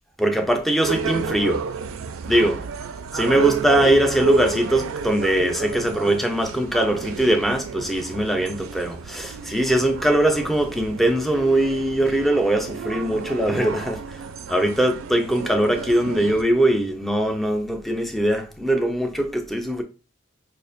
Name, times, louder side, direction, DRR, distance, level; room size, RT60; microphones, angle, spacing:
voice 1, 0.2-1.7 2.2-2.6 3.1-19.8, right 1 dB, ahead, 0.3 m, -21 dB
sound 1, 0.8-16.4, right 5 dB, 90° right, 0.4 m, -31 dB
5.0 x 2.4 x 2.5 m
head